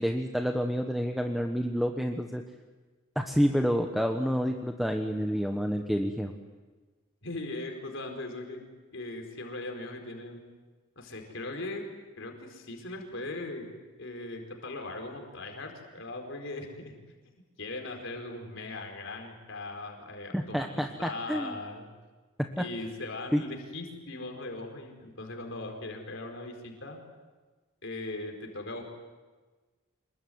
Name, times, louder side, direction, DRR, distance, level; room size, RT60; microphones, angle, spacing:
voice 1, 0.0-2.4 3.1-6.3 20.3-21.6 22.6-22.7 23.3-23.4, equal, ahead, 4 dB, 1.2 m, -28 dB
voice 2, 7.2-8.6 8.9-10.4 11.0-11.9 12.2-13.7 14.0-16.9 17.6-21.9 22.6-27.0 27.8-28.8, left 2 dB, 60° left, 3 dB, 4.7 m, -39 dB
26.5 x 22.5 x 9.5 m, 1.3 s
head